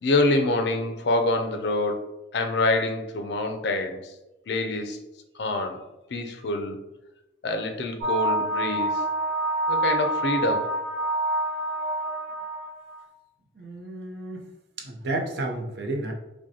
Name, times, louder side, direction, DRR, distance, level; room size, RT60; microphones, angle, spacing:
voice 1, 0.0-4.1 4.5-5.0 5.3-5.8 6.1-6.8 7.4-9.0 9.7-10.7, left 2 dB, 65° left, 6 dB, 0.5 m, -26 dB
sound 1, 8.0-13.0, right 1 dB, 25° left, 1.4 m, -27 dB
voice 2, 13.6-14.5 14.8-16.1, right 2 dB, 65° right, 0 dB, 0.6 m, -31 dB
5.0 x 2.2 x 2.8 m, 0.99 s
head